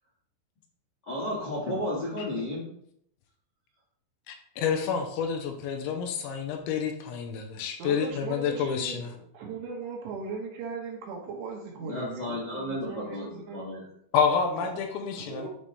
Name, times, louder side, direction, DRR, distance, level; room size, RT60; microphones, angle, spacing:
voice 1, 1.1-2.7 11.8-13.8, left 1 dB, 55° left, -6 dB, 1.2 m, -33 dB
voice 2, 4.3-9.1 14.1-15.5, left 6 dB, 85° left, 4 dB, 3.0 m, -29 dB
voice 3, 7.8-13.7 14.6-14.8 15.2-15.5, right 5 dB, 70° right, -1 dB, 3.2 m, -38 dB
10.0 x 4.1 x 3.3 m, 0.68 s
omnidirectional pair, 5.4 m